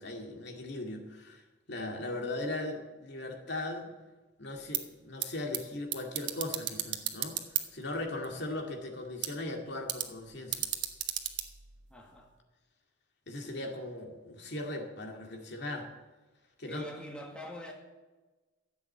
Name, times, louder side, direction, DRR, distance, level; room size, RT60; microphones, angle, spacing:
voice 1, 0.0-1.4 1.7-3.9 4.4-7.4 7.7-10.7 13.3-15.9 16.6-16.9, left 2 dB, 65° left, 2 dB, 2.2 m, -38 dB
sound 1, 4.6-12.4, right 12 dB, 70° right, 1.2 m, -38 dB
voice 2, 11.9-12.3 16.6-17.7, equal, 5° left, 0 dB, 1.8 m, -44 dB
13.5 x 8.1 x 8.0 m, 1.2 s
head